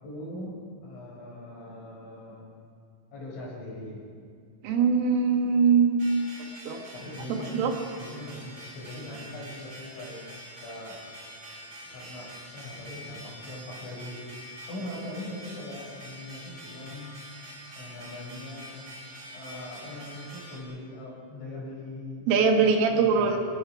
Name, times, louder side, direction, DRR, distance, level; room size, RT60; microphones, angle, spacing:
voice 1, 0.0-2.4 3.1-4.0 6.9-7.6 8.0-10.2 10.6-11.0 11.9-14.3 14.7-17.2 17.8-18.8 19.3-23.4, left 1 dB, 75° left, -4 dB, 8.4 m, -41 dB
voice 2, 4.6-6.0 6.7-6.8 7.3-7.7 22.3-23.4, right 5 dB, 90° right, 3 dB, 4.4 m, -22 dB
sound 1, 6.0-20.6, equal, 35° right, 4.5 m, -45 dB
29.0 x 19.5 x 5.2 m, 2.2 s
omnidirectional pair, 5.6 m